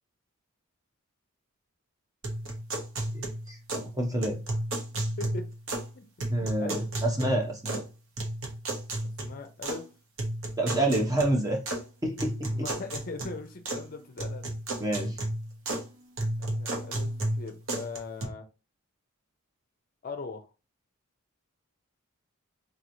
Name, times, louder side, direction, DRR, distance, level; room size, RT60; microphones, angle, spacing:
sound 1, 2.2-3.9 4.2-5.9 6.2-7.9 8.2-9.8 10.2-11.8 12.2-13.9 14.2-15.9 16.2-18.2, right 1 dB, 60° right, 0.9 m, -33 dB
voice 1, 3.1-4.4 6.3-7.8 10.6-11.6 12.0-12.7 14.8-15.2, right 1 dB, 15° right, 0.8 m, -28 dB
voice 2, 6.4-6.9 9.2-9.9 12.6-14.5 16.4-17.1 17.4-18.4 20.0-20.4, left 3 dB, 40° left, 0.5 m, -39 dB
4.0 x 3.0 x 2.6 m
head